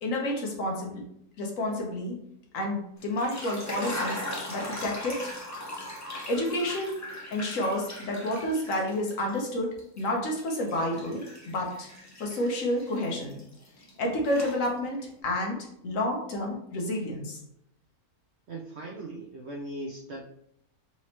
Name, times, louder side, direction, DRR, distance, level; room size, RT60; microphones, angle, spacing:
voice 1, 0.0-1.0 1.4-2.2 2.5-4.2 4.5-5.3 6.3-7.0 7.3-11.9 12.2-13.4 14.0-17.4, left 1 dB, 60° left, 0 dB, 1.2 m, -30 dB
sound 1, 3.0-9.4 9.8-13.9 14.2-15.1, left 1 dB, 25° left, 0.3 m, -39 dB
voice 2, 18.5-20.2, right 1 dB, 70° right, -1 dB, 0.6 m, -39 dB
4.1 x 3.0 x 2.9 m, 0.75 s
omnidirectional pair, 1.6 m